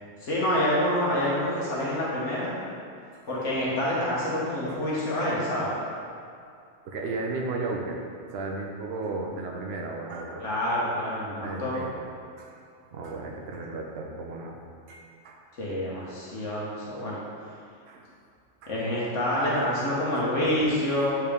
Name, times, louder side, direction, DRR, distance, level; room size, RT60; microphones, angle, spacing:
voice 1, 0.2-2.5 3.3-5.8 10.4-11.7 15.6-17.2 18.7-21.1, left 1 dB, 80° left, -7 dB, 1.7 m, -27 dB
voice 2, 6.8-8.0 8.3-10.4 11.4-12.0 12.4-12.6 12.9-14.6 14.9-15.4 17.9-18.0 18.6-18.7 20.6-20.7, right 3 dB, 65° right, 0 dB, 0.9 m, -34 dB
8.7 x 4.4 x 3.6 m, 2.3 s
omnidirectional pair, 1.2 m